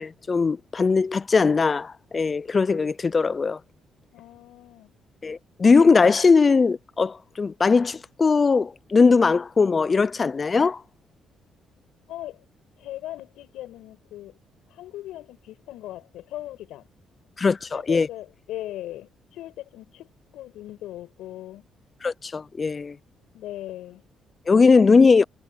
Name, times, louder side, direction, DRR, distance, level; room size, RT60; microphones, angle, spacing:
voice 1, 0.0-3.6 5.2-10.8 17.4-18.1 22.0-23.0 24.5-25.2, left 4 dB, 35° left, 0.5 m, -20 dB
voice 2, 4.1-4.9 12.1-12.4 12.8-14.4 14.7-16.9 17.7-20.1 20.3-21.7 23.3-24.0 24.9-25.1, left 14 dB, 90° left, 6.9 m, -39 dB
cardioid pair, 90°, 0 cm